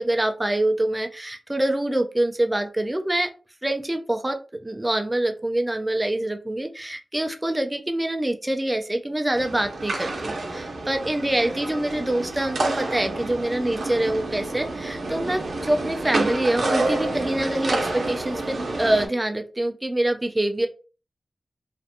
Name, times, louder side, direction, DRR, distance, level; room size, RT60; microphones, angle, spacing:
voice 1, 0.0-3.3 3.6-20.7, right 1 dB, 15° right, 6 dB, 0.3 m, -25 dB
sound 1, 9.3-19.1, right 2 dB, 70° right, 0.5 m, -28 dB
2.4 x 2.2 x 2.6 m, 0.35 s
wide cardioid pair, 120°, 0 cm